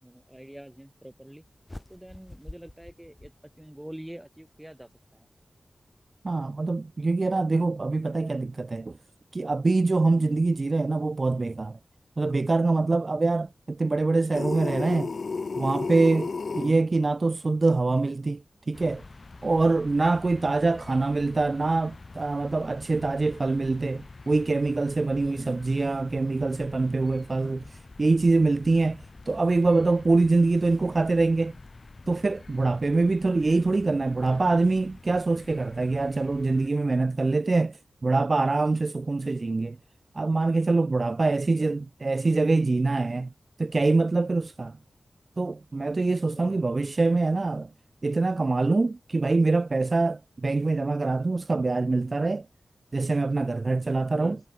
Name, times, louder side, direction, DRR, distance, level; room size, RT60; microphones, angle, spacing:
voice 1, 0.0-1.4 1.9-5.3 10.1-10.4 16.5-16.8 25.2-25.6 41.4-41.7 46.3-46.7 54.1-54.4, right 1 dB, 10° right, 6.7 m, -45 dB
sound 1, 1.7-4.0, left 1 dB, 20° left, 1.3 m, -46 dB
voice 2, 6.2-9.0 9.3-11.8 12.2-15.1 15.6-16.3 16.5-19.0 19.4-31.5 32.1-39.8 40.2-43.3 43.6-44.8 45.4-47.7 48.0-52.4 52.9-54.4, right 3 dB, 45° right, 0.5 m, -24 dB
sound 2, 14.3-16.7, left 4 dB, 65° left, 0.5 m, -31 dB
sound 3, 18.7-36.7, left 3 dB, 45° left, 1.1 m, -47 dB
wide cardioid pair, 85°, 0 cm